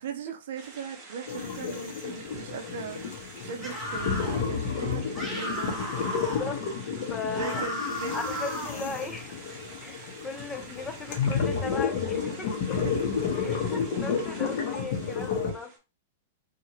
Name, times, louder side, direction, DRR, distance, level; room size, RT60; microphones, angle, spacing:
voice 1, 0.0-5.8 7.2-8.2, right 6 dB, 70° right, 0.5 m, -38 dB
sound 1, 0.6-15.8, right 3 dB, 30° right, 1.0 m, -47 dB
sound 2, 1.3-15.5, left 6 dB, 55° left, 0.9 m, -31 dB
sound 3, 3.6-4.4 5.1-6.5 7.3-8.8, equal, 5° right, 0.9 m, -35 dB
voice 2, 6.0-6.6 7.1-7.7 8.0-9.4 9.8-12.8 13.4-15.7, left 4 dB, 15° left, 0.4 m, -37 dB
2.7 x 2.4 x 2.9 m
hypercardioid pair, 140°, 0 cm